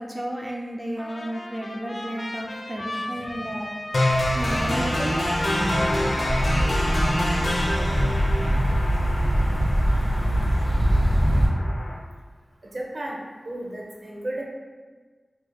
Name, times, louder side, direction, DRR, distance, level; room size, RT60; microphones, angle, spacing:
voice 1, 0.0-3.7 4.3-5.2, right 1 dB, 15° right, -1 dB, 0.4 m, -32 dB
Trumpet, 1.0-8.6, left 1 dB, 45° left, 0.5 m, -37 dB
sound 1, 3.9-11.9, left 1 dB, 75° left, 0.7 m, -27 dB
sound 2, 4.1-11.5, equal, 40° right, 1.2 m, -24 dB
voice 2, 12.6-13.2 13.4-14.4, right 1 dB, 60° right, -2 dB, 0.7 m, -33 dB
4.9 x 2.7 x 2.3 m, 1.4 s
wide cardioid pair, 65°, 0 cm